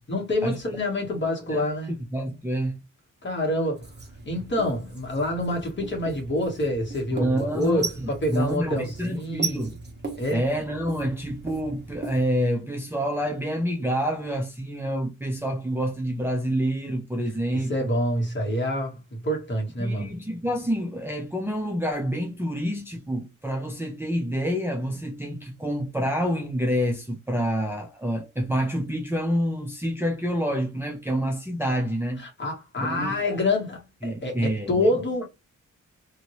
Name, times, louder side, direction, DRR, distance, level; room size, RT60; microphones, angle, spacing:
voice 1, 0.1-1.9 3.2-3.9 4.2-9.7 10.2-10.4 17.5-20.1 32.2-35.3, left 1 dB, 35° left, 1.4 m, -27 dB
voice 2, 1.1-2.8 7.1-9.8 10.3-17.9 19.8-32.2 32.8-33.4 34.0-34.9, equal, 5° right, 0.6 m, -28 dB
Writing, 3.8-12.2, right 4 dB, 35° right, 1.2 m, -37 dB
2.8 x 2.7 x 3.0 m
wide cardioid pair, 115°, 31 cm